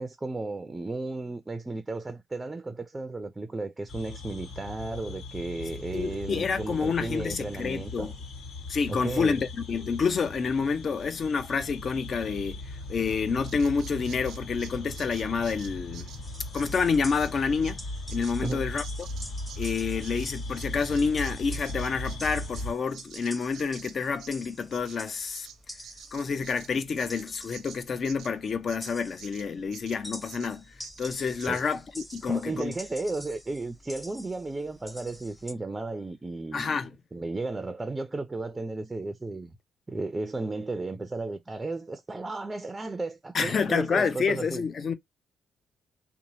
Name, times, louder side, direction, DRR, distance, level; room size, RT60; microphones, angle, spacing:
voice 1, 0.0-8.1 8.9-9.4 18.4-18.7 31.4-31.6 32.3-36.8 37.1-39.5 39.9-44.6, right 2 dB, 20° right, 0.5 m, -34 dB
sound 1, 3.9-22.7, left 2 dB, 80° left, 1.4 m, -38 dB
voice 2, 5.9-8.1 8.7-12.6 12.9-16.1 16.5-17.8 18.1-19.1 19.6-25.5 26.1-30.6 31.0-32.7 36.5-36.9 43.3-44.9, left 5 dB, 50° left, 0.6 m, -28 dB
Bird vocalization bird call bird song, 13.5-21.4 21.6-30.5 30.8-31.1 31.4-31.7 32.0-32.3 32.6-32.7, right 9 dB, 75° right, 0.5 m, -49 dB
sound 2, 16.2-35.5, left 1 dB, 10° left, 0.8 m, -47 dB
2.9 x 2.1 x 2.7 m
cardioid pair, 90°, 0 cm